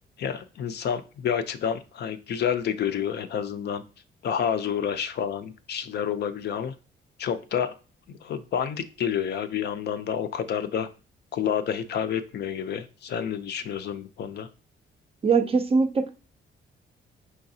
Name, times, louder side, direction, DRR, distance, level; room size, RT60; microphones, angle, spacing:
voice 1, 0.2-3.8 4.2-6.7 7.2-7.7 8.1-10.9 11.3-14.5, left 8 dB, 55° left, 10 dB, 0.4 m, -29 dB
voice 2, 15.2-16.1, right 4 dB, 30° right, 8 dB, 0.4 m, -21 dB
4.8 x 3.4 x 2.7 m, 0.34 s
cardioid pair, 135°, 20 cm